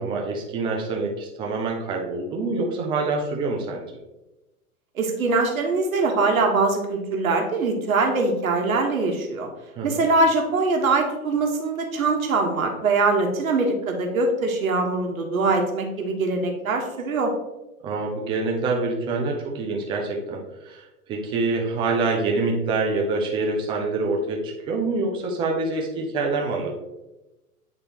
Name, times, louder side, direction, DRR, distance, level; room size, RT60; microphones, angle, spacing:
voice 1, 0.0-3.9 9.8-10.1 17.8-26.7, right 3 dB, 10° right, 0 dB, 0.5 m, -26 dB
voice 2, 4.9-9.5 9.8-17.3, right 3 dB, 65° right, 2 dB, 1.2 m, -22 dB
9.1 x 3.6 x 2.9 m, 1.0 s
figure-of-eight pair, 105°, 45 cm